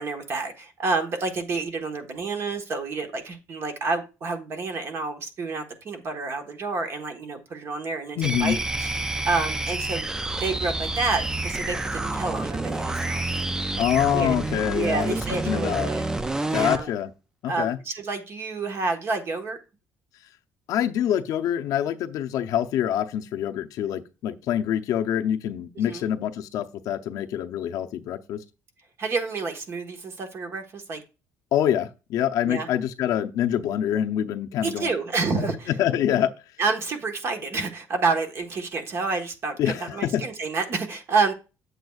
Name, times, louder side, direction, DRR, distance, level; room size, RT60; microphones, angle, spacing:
voice 1, 0.0-10.1 10.4-13.2 13.6-13.8 14.1-14.4 14.7-16.0 16.5-16.9 17.5-19.6 25.8-26.0 29.0-31.0 32.4-32.7 34.6-35.7 36.6-41.3, right 4 dB, 40° right, 1.3 m, -29 dB
voice 2, 8.2-8.6 13.8-15.2 15.4-15.9 16.5-17.1 17.4-17.8 20.7-28.4 31.5-34.9 35.8-36.3 39.6-40.2, left 10 dB, 65° left, 0.6 m, -25 dB
sound 1, 8.2-16.9, right 2 dB, 10° right, 0.3 m, -28 dB
7.9 x 7.7 x 2.4 m
cardioid pair, 150°, 6 cm